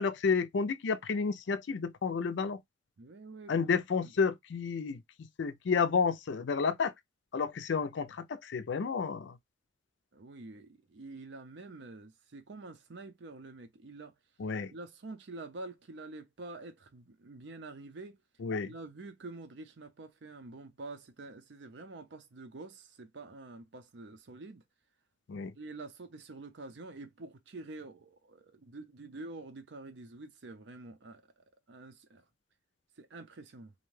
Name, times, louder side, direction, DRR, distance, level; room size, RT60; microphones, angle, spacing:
voice 1, 0.0-2.6 3.5-6.9 7.3-9.4 14.4-14.7 18.4-18.7 25.3-25.5, left 5 dB, 65° left, 0.4 m, -31 dB
voice 2, 3.0-3.5 4.0-4.1 10.1-14.1 14.7-18.2 18.6-24.6 25.6-31.2 31.7-32.2 33.0-33.7, right 2 dB, 65° right, 0.6 m, -47 dB
2.6 x 2.2 x 3.1 m
head